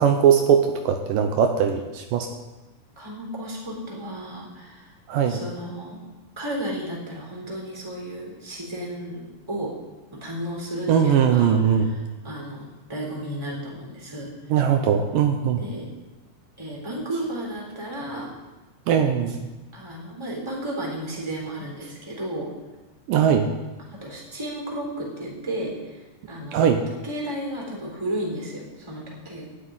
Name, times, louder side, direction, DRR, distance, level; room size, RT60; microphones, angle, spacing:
voice 1, 0.0-2.3 5.1-5.4 10.9-11.9 14.5-15.6 18.9-19.4 23.1-23.5 26.5-26.8, right 8 dB, 75° right, 5 dB, 2.4 m, -20 dB
voice 2, 3.0-4.9 5.2-6.0 6.4-9.7 10.1-11.5 11.8-12.0 12.2-14.3 15.6-15.9 16.6-18.3 19.7-22.5 24.0-25.7 26.3-26.6 27.0-29.5, right 1 dB, 10° right, -3 dB, 3.2 m, -33 dB
10.5 x 8.4 x 9.5 m, 1.1 s
omnidirectional pair, 4.1 m